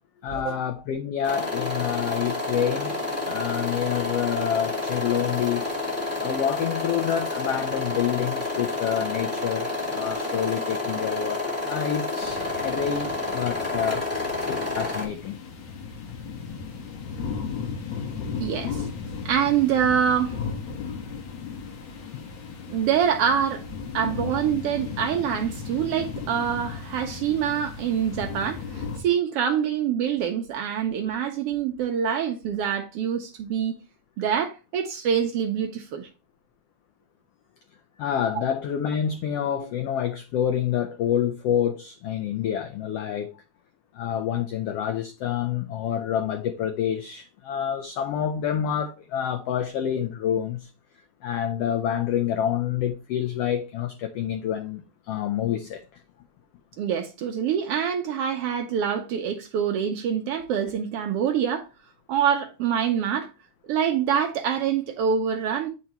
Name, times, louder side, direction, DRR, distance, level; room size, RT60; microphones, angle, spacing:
voice 1, 0.2-2.9 3.2-5.7 6.2-14.0 14.5-15.4 22.1-22.2 38.0-43.4 43.9-50.7 51.2-55.8, left 9 dB, 85° left, 1.3 m, -27 dB
sound 1, 1.2-15.0, left 2 dB, 5° left, 2.0 m, -29 dB
sound 2, 12.2-29.0, left 5 dB, 65° left, 2.5 m, -36 dB
voice 2, 18.3-18.9 19.2-20.4 22.7-23.6 23.9-33.8 34.2-36.1 38.3-38.4 56.8-61.7 62.1-63.3 63.7-65.7, right 8 dB, 85° right, 1.3 m, -25 dB
8.6 x 4.6 x 2.9 m
omnidirectional pair, 3.5 m